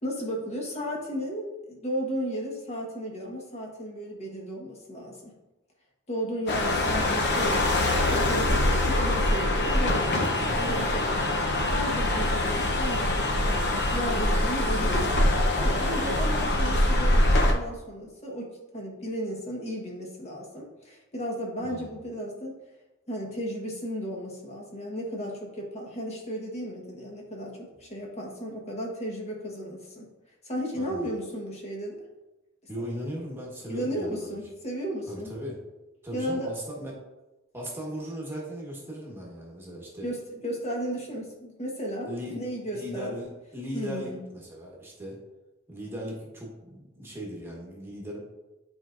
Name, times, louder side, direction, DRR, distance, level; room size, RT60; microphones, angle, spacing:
voice 1, 0.0-5.3 6.1-15.3 15.5-22.6 23.1-30.1 30.4-32.0 33.7-35.3 36.1-36.5 40.0-43.2 43.7-44.2, equal, 35° left, -1 dB, 1.4 m, -34 dB
sound 1, 6.5-17.5, left 1 dB, 55° left, 0.8 m, -24 dB
voice 2, 30.7-31.1 32.7-34.4 35.1-35.6 36.0-36.9 37.5-40.1 42.0-45.2 45.7-48.2, equal, 10° right, -3 dB, 1.3 m, -38 dB
9.3 x 4.6 x 2.6 m, 1.1 s
head